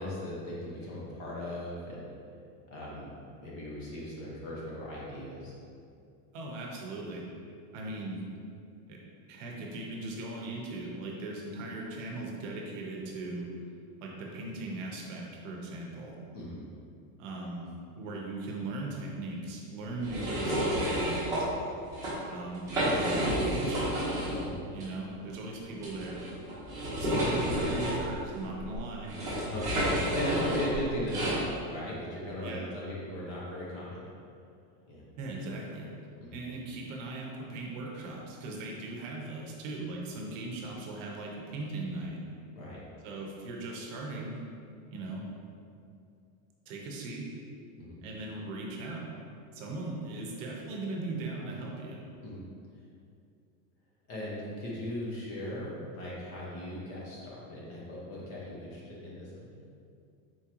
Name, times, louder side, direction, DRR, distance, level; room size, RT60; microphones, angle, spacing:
voice 1, 0.0-2.1 2.7-3.1 3.4-5.5 16.3-16.6 24.3-24.6 29.4-34.0 34.9-35.1 36.2-36.4 42.6-42.8 47.8-48.0 52.2-52.4 54.1-59.6, left 1 dB, 30° left, -5 dB, 0.7 m, -38 dB
voice 2, 6.3-7.3 7.7-8.2 8.9-9.0 9.3-13.5 14.0-16.2 17.2-21.5 22.3-24.0 24.7-26.2 27.0-29.3 30.3-30.5 32.4-32.7 35.2-35.9 36.3-42.2 43.0-44.4 44.9-45.2 46.7-47.3 48.0-49.0 49.5-52.0, right 2 dB, 50° right, -1 dB, 0.8 m, -39 dB
sound 1, 20.0-21.4 21.8-22.1 22.5-24.4 24.8-24.9 25.8-31.4, equal, 5° right, 0.8 m, -30 dB
4.4 x 3.7 x 2.9 m, 2.5 s
supercardioid pair, 170°, 48 cm